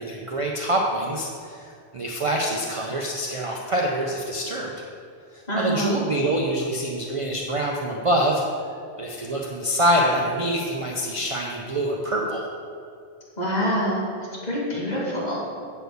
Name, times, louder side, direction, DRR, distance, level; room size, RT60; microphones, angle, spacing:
voice 1, 0.0-4.7 5.3-8.4 9.0-12.4, right 1 dB, 35° right, -1 dB, 0.6 m, -25 dB
voice 2, 5.5-6.0 13.4-14.0 14.4-15.5, equal, 40° left, -7 dB, 2.3 m, -25 dB
7.8 x 4.3 x 6.7 m, 2.4 s
omnidirectional pair, 1.1 m